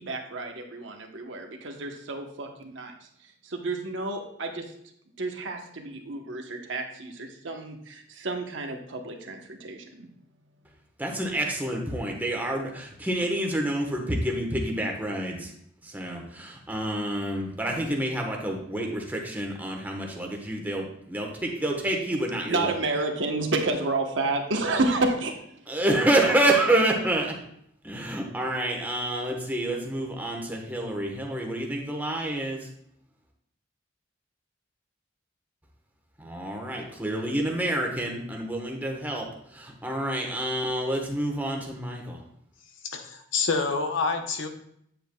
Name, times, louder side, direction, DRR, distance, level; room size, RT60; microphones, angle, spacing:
voice 1, 0.0-2.9 3.4-4.6 5.2-10.0 22.5-25.4, right 2 dB, 70° right, 3 dB, 1.1 m, -30 dB
voice 2, 11.0-15.5 15.8-22.7 25.7-27.3 27.8-32.7 36.2-39.3 39.5-42.2, right 1 dB, 10° right, 0 dB, 1.2 m, -28 dB
voice 3, 42.8-44.5, left 4 dB, 75° left, 5 dB, 0.9 m, -27 dB
9.0 x 7.8 x 2.3 m, 0.71 s
head